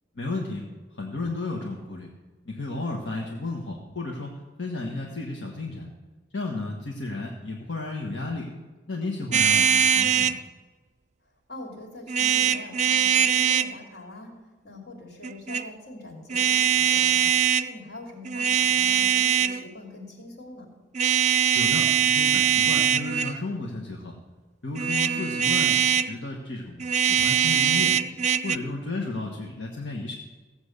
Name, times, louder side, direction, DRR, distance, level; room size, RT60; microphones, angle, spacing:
voice 1, 0.2-0.6 0.9-2.1 2.4-5.9 6.3-8.5 8.9-10.3 21.5-24.1 24.6-27.9 28.4-30.2, left 2 dB, 80° left, 0 dB, 1.4 m, -33 dB
sound 1, 9.3-10.4 12.1-13.7 15.2-15.6 16.3-17.7 18.2-19.6 20.9-23.4 24.7-26.1 26.8-28.6, right 8 dB, 40° right, 0.4 m, -22 dB
voice 2, 11.5-14.4 14.6-17.3 17.6-20.7, left 1 dB, 65° left, 0 dB, 3.1 m, -43 dB
16.0 x 8.1 x 6.7 m, 1.3 s
head